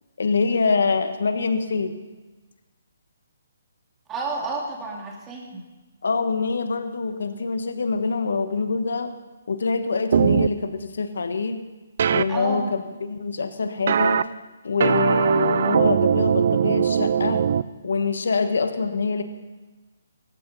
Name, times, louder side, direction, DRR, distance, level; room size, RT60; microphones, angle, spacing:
voice 1, 0.2-1.9 6.0-9.2 9.5-11.6 12.1-14.2 14.6-17.4 17.8-19.2, left 4 dB, 75° left, 8 dB, 1.4 m, -25 dB
voice 2, 4.1-5.6 12.3-12.7, right 3 dB, 15° right, -1 dB, 3.0 m, -30 dB
sound 1, 10.1-10.5 12.0-12.2 13.9-14.2 14.8-17.6, right 8 dB, 55° right, 0.5 m, -20 dB
17.0 x 14.5 x 4.2 m, 1.2 s
hypercardioid pair, 150°, 0 cm